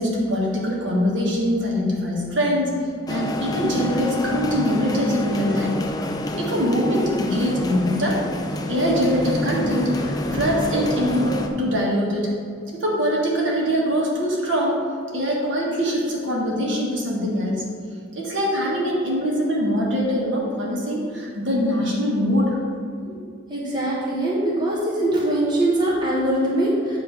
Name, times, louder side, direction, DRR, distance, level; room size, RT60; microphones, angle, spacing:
voice 1, 0.0-2.7 3.1-5.9 6.4-8.2 8.7-12.3 12.8-14.8 15.1-17.7 18.1-22.6 23.0-23.2, equal, 65° right, -3 dB, 1.6 m, -23 dB
sound 1, 3.1-11.5, left 1 dB, 20° left, 0.4 m, -28 dB
voice 2, 23.5-27.0, right 1 dB, 20° right, -6 dB, 1.2 m, -22 dB
8.9 x 3.2 x 6.5 m, 2.3 s
head